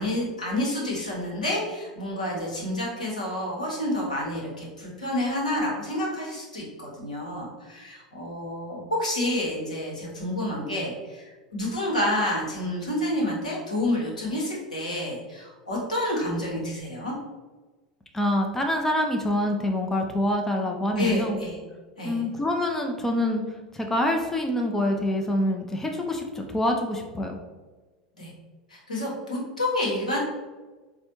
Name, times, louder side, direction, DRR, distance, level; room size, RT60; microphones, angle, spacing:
voice 1, 0.0-11.2 11.5-17.1 21.0-21.6 22.0-22.2 28.2-28.3 28.7-30.2, left 1 dB, 80° left, -3 dB, 1.0 m, -29 dB
voice 2, 18.1-21.4 22.0-23.4 23.7-27.4, left 1 dB, 10° left, 2 dB, 0.4 m, -26 dB
4.1 x 2.3 x 2.9 m, 1.3 s
figure-of-eight pair, 80°, 4 cm